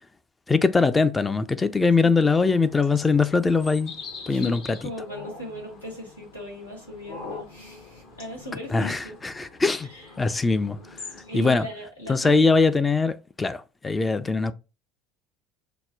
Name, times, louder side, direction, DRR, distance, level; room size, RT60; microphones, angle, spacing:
voice 1, 0.5-3.9 4.3-4.8 8.7-9.9 10.2-10.8 11.1-11.7 12.1-14.5, left 4 dB, 15° left, 0.4 m, -22 dB
sound 1, 2.1-11.7, left 4 dB, 50° left, 1.0 m, -44 dB
voice 2, 4.3-9.1 9.9-10.1 11.3-12.6, left 1 dB, 85° left, 1.6 m, -38 dB
5.9 x 2.1 x 3.5 m
figure-of-eight pair, 65°, 0 cm